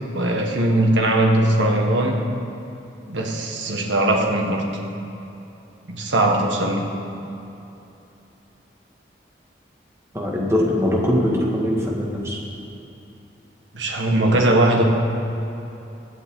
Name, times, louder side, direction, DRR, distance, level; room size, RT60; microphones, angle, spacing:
voice 1, 0.1-2.3 3.1-4.7 5.9-6.9 13.7-14.8, right 1 dB, 85° right, 1 dB, 1.7 m, -20 dB
voice 2, 10.1-12.4, left 1 dB, 15° right, -3 dB, 1.8 m, -22 dB
23.5 x 8.0 x 3.8 m, 2.8 s
head